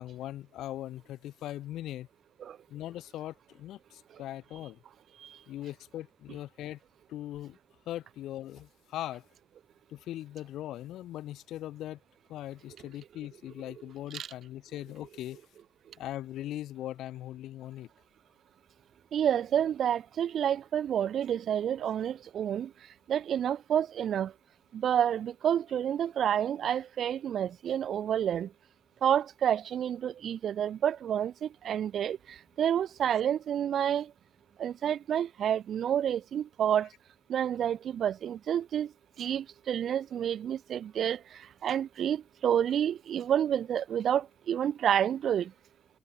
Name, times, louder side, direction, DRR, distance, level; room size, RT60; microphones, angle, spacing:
voice 1, 0.0-2.1 2.7-4.8 5.5-6.8 7.1-7.6 7.9-9.2 9.9-12.0 12.3-15.4 16.0-17.9, left 13 dB, 85° left, 2.8 m, -40 dB
voice 2, 19.1-22.7 23.1-24.3 24.7-28.5 29.0-34.1 34.6-36.9 37.3-45.5, right 9 dB, 65° right, 0.7 m, -29 dB
cardioid pair, 90°, 0 cm